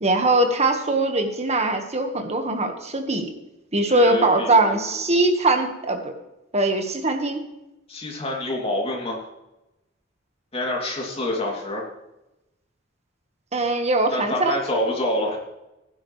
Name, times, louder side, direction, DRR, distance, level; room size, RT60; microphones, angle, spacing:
voice 1, 0.0-3.3 3.7-6.1 6.5-7.4 13.5-14.6, right 2 dB, 35° right, 5 dB, 1.6 m, -21 dB
voice 2, 3.9-4.9 7.9-9.3 10.5-11.8 14.1-15.4, left 1 dB, 30° left, -1 dB, 3.1 m, -27 dB
15.5 x 12.0 x 3.3 m, 0.95 s
head